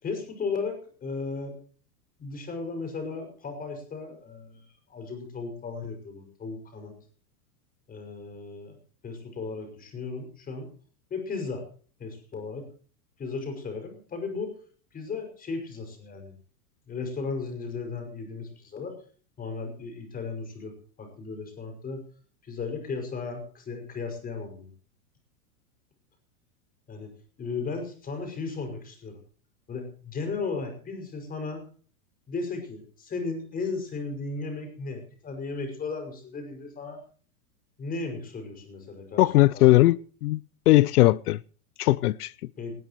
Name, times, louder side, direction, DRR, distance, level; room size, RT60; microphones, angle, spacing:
voice 1, 0.0-1.5 2.2-7.0 7.9-8.7 9.0-10.7 11.1-11.6 12.0-12.7 13.2-14.5 14.9-16.3 16.9-18.9 19.4-22.0 22.4-24.7 26.9-27.1 27.4-29.2 29.7-31.6 32.3-37.0 37.8-39.2 39.5-39.7 42.6-42.7, left 4 dB, 20° left, 5.8 m, -35 dB
voice 2, 39.2-40.0 40.2-40.4 40.7-41.4 41.8-42.3, left 17 dB, 85° left, 0.7 m, -19 dB
19.0 x 18.0 x 3.1 m
supercardioid pair, 150°, 44 cm